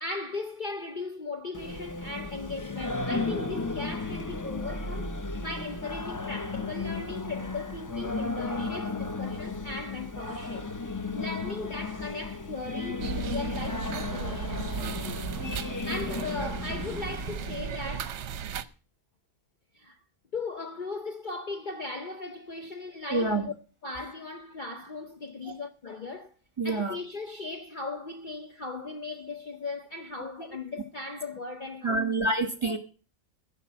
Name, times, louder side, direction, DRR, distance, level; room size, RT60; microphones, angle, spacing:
voice 1, 0.0-10.7 11.1-14.8 15.9-18.2 19.7-20.0 20.3-23.4 23.8-26.3 26.6-32.0, left 3 dB, 40° left, 0.8 m, -38 dB
Singing, 1.5-17.5, left 3 dB, 20° left, 0.5 m, -34 dB
sound 1, 13.0-18.6, right 7 dB, 60° right, 0.9 m, -35 dB
voice 2, 23.1-23.5 25.4-25.6 26.6-27.0 31.8-32.8, right 2 dB, 20° right, 1.3 m, -27 dB
15.5 x 5.3 x 7.2 m
omnidirectional pair, 1.5 m